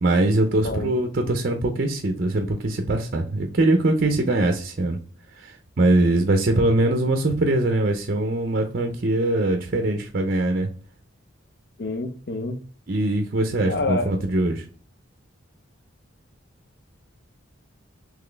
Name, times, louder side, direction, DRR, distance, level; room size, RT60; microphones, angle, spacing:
voice 1, 0.0-5.0 5.4-10.7 12.9-14.7, right 2 dB, 45° right, 5 dB, 0.5 m, -22 dB
voice 2, 11.8-12.6 13.7-14.3, left 3 dB, 55° left, 7 dB, 0.6 m, -28 dB
4.1 x 3.0 x 3.3 m, 0.42 s
head